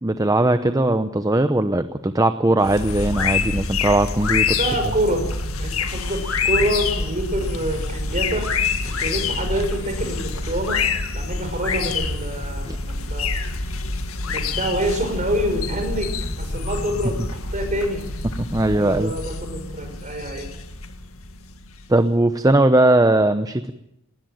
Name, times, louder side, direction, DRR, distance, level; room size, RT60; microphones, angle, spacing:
voice 1, 0.0-4.6 12.6-12.8 18.5-19.1 21.9-23.7, right 1 dB, 15° right, 10 dB, 0.8 m, -19 dB
sound 1, 2.6-22.0, left 4 dB, 80° left, 2.0 m, -26 dB
voice 2, 4.6-5.2 5.6-8.5 8.9-10.8 11.1-13.3 14.2-16.1 16.4-18.0 18.6-20.5, right 1 dB, 35° right, 5 dB, 5.7 m, -26 dB
19.5 x 18.5 x 8.9 m, 0.81 s
head